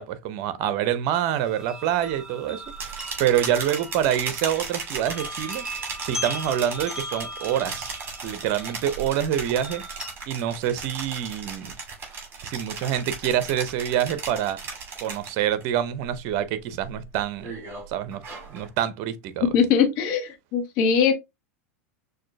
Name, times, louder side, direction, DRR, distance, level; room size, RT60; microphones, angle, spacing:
voice 1, 0.0-2.6 3.2-5.6 6.0-7.9 8.2-9.8 10.3-11.7 12.4-14.6 15.0-17.5 17.9-18.2 18.5-19.5, right 10 dB, 50° right, 0.6 m, -26 dB
sound 1, 1.1-10.1, equal, 10° right, 1.4 m, -39 dB
sound 2, 2.7-15.6 16.0-16.4 16.8-18.7, right 5 dB, 30° right, 2.3 m, -36 dB
voice 2, 19.5-21.1, left 6 dB, 55° left, 1.2 m, -21 dB
6.1 x 2.7 x 2.2 m
hypercardioid pair, 95°, 8 cm